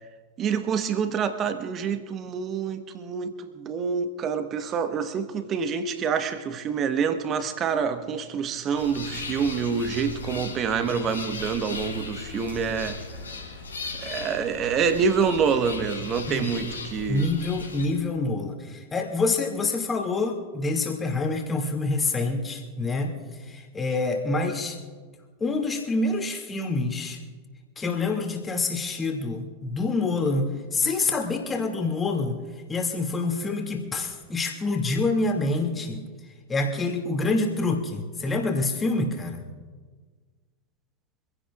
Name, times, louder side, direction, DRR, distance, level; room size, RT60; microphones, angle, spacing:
voice 1, 0.4-13.0 14.0-17.3, right 6 dB, 30° right, 1.3 m, -27 dB
sound 1, 8.7-17.9, left 4 dB, 75° left, 3.9 m, -37 dB
voice 2, 17.1-24.8 25.4-27.2 27.8-32.4 32.7-36.1 36.5-39.5, left 3 dB, 15° left, 2.5 m, -27 dB
25.5 x 16.5 x 2.5 m
figure-of-eight pair, 90°, 0 cm